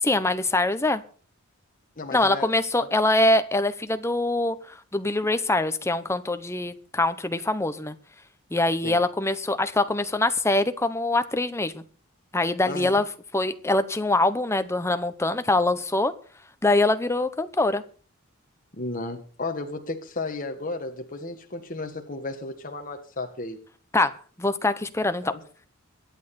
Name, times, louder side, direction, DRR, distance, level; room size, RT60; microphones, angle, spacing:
voice 1, 0.0-1.0 2.1-7.9 8.5-11.8 12.3-13.0 13.3-16.1 16.6-17.8 23.9-24.1 24.4-25.3, left 2 dB, 10° left, 10 dB, 0.9 m, -24 dB
voice 2, 2.0-2.5 2.8-2.9 8.8-9.0 12.7-13.0 18.7-23.6 25.2-25.4, left 2 dB, 40° left, 3 dB, 1.5 m, -34 dB
23.5 x 8.8 x 4.3 m, 0.42 s
head